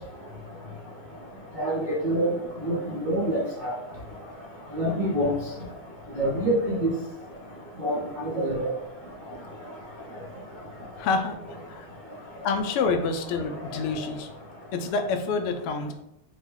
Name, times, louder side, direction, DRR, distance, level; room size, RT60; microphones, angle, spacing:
voice 1, 1.6-2.3 2.7-2.8 3.0-3.7 4.7-5.3 6.2-6.9 7.8-8.0 8.3-8.7, right 1 dB, 85° right, -7 dB, 0.4 m, -25 dB
voice 2, 11.0-11.4 12.4-14.3 14.7-15.9, left 4 dB, 90° left, 6 dB, 1.5 m, -27 dB
5.0 x 2.2 x 3.5 m, 0.81 s
omnidirectional pair, 2.4 m